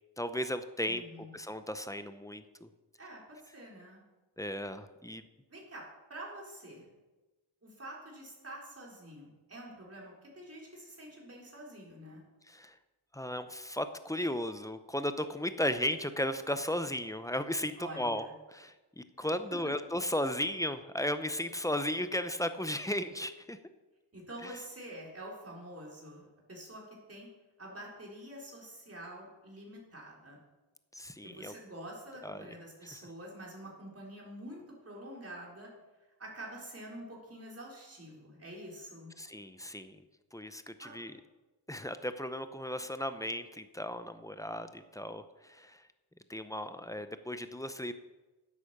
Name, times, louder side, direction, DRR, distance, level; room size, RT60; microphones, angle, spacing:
voice 1, 0.2-2.7 4.4-5.2 12.5-12.7 13.1-23.6 24.4-24.6 30.9-31.5 32.2-32.6 39.2-40.0 40.3-41.2 41.7-45.8 46.3-47.9, left 1 dB, 5° left, 10 dB, 0.6 m, -35 dB
voice 2, 0.9-1.3 3.0-4.0 5.5-6.9 7.6-12.2 17.8-18.3 24.1-26.8 27.1-27.3 27.6-30.4 31.2-35.7 36.2-39.1 40.8-40.9, right 1 dB, 30° right, -3 dB, 3.8 m, -47 dB
10.0 x 8.5 x 6.6 m, 1.2 s
wide cardioid pair, 100°, 48 cm